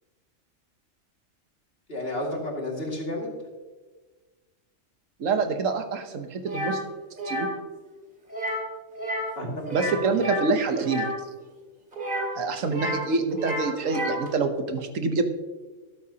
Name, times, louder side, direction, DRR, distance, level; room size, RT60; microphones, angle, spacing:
voice 1, 1.9-3.3 9.4-10.2 12.6-12.7, left 1 dB, 50° left, -1 dB, 2.5 m, -32 dB
voice 2, 5.2-6.8 7.3-7.5 9.7-11.1 12.4-15.2, right 4 dB, 85° right, 7 dB, 1.3 m, -26 dB
sound 1, 6.5-6.8 7.2-7.5 8.3-8.7 8.9-9.3 9.6-11.1 11.9-13.1 13.3-14.3, equal, 40° right, 2.4 m, -30 dB
13.5 x 12.0 x 2.8 m, 1.3 s
omnidirectional pair, 1.3 m